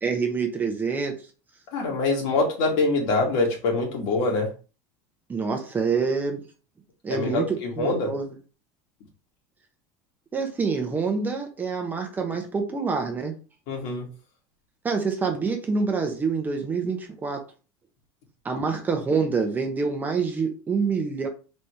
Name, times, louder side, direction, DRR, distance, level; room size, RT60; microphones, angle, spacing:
voice 1, 0.0-1.2 5.3-6.4 7.0-8.3 10.3-13.4 14.8-17.4 18.4-21.3, right 5 dB, 20° right, 0.8 m, -26 dB
voice 2, 1.7-4.5 7.1-8.1 13.7-14.1, left 3 dB, 70° left, 2.1 m, -24 dB
4.2 x 3.4 x 3.4 m
supercardioid pair, 135°, 10 cm